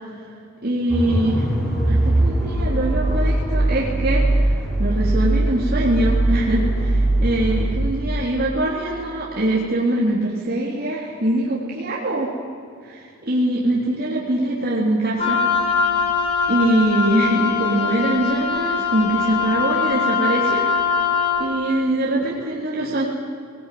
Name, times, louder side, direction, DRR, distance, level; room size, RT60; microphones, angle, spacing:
voice 1, 0.6-1.5 1.9-4.5 4.8-12.3 12.8-15.4 16.5-20.7 21.3-23.1, right 1 dB, 45° right, -5 dB, 3.6 m, -23 dB
sound 1, 0.9-7.9, right 1 dB, 5° left, 7.7 m, -20 dB
Wind instrument woodwind instrument, 15.2-21.5, left 5 dB, 30° left, 5.1 m, -22 dB
21.0 x 19.0 x 9.4 m, 2.4 s
head